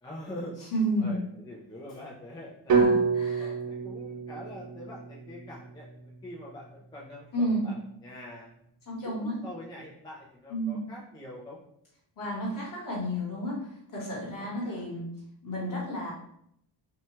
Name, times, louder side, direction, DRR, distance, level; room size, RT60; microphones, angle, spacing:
voice 1, 0.0-0.5 1.0-2.8 3.4-8.5 9.0-11.6 14.4-14.8, left 1 dB, 10° left, -6 dB, 0.4 m, -44 dB
voice 2, 0.7-1.1 2.7-3.5 7.3-7.7 8.9-9.4 10.5-10.8 12.2-15.1 15.4-16.1, equal, 45° left, -4 dB, 1.1 m, -31 dB
sound 1, 2.7-6.8, right 5 dB, 45° right, 0.5 m, -29 dB
2.8 x 2.2 x 2.9 m, 0.73 s
wide cardioid pair, 160°, 44 cm